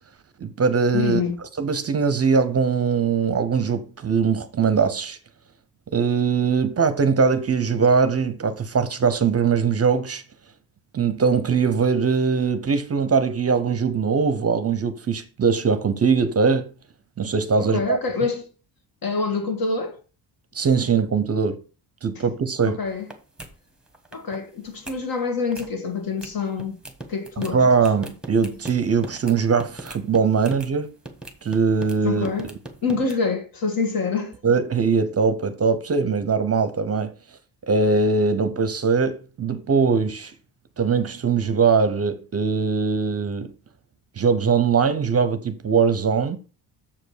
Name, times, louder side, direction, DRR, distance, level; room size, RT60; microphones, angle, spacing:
voice 1, 0.4-1.2 1.6-5.2 5.9-10.2 10.9-16.7 17.2-18.0 20.5-21.6 22.0-22.8 27.4-30.9 31.4-32.3 34.4-37.1 37.7-40.3 40.8-43.5 44.2-46.4, right 5 dB, 35° right, 0.7 m, -21 dB
voice 2, 0.9-1.4 17.6-18.4 19.0-20.0 22.2-22.3 22.7-23.1 24.1-26.8 27.1-27.6 32.0-32.5 32.8-34.4, left 4 dB, 55° left, 2.0 m, -26 dB
sound 1, 22.9-23.1 23.4-23.5 23.9-24.4 24.7-25.0 25.4-25.7 26.2-26.3 26.6-30.7 31.1-32.0 32.2-33.2, right 2 dB, ahead, 1.3 m, -39 dB
7.2 x 5.2 x 6.4 m
wide cardioid pair, 170°, 43 cm